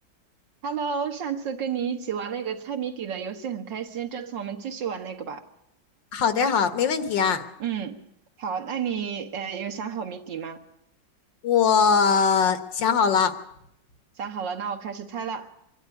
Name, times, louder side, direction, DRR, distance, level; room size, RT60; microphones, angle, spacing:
voice 1, 0.6-5.4 7.6-8.0 8.4-10.6 14.2-15.5, right 7 dB, 75° right, 2.3 m, -31 dB
voice 2, 6.1-7.4 11.4-13.3, left 6 dB, 75° left, 2.0 m, -21 dB
25.5 x 12.0 x 9.8 m
omnidirectional pair, 2.0 m